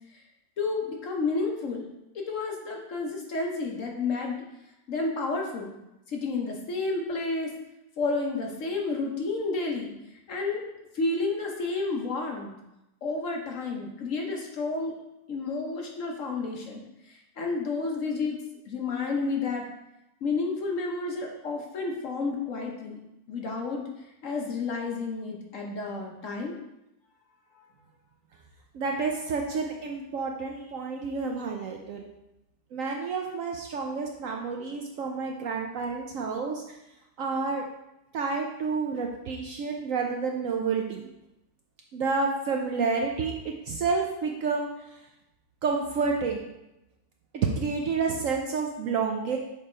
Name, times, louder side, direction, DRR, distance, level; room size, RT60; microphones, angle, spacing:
voice 1, 0.6-1.9 2.1-4.4 4.9-5.7 6.1-7.5 8.0-9.9 10.3-10.7 10.9-12.5 13.0-14.9 15.3-18.4 18.7-19.7 20.2-23.0 23.3-23.9 24.2-26.5, left 3 dB, 55° left, 0 dB, 1.1 m, -31 dB
voice 2, 28.7-32.0 32.7-36.8 37.2-37.6 38.1-41.1 41.9-44.7 45.6-46.5 47.3-49.4, right 4 dB, 65° right, 2 dB, 0.8 m, -29 dB
6.8 x 3.4 x 4.3 m, 0.90 s
omnidirectional pair, 1.8 m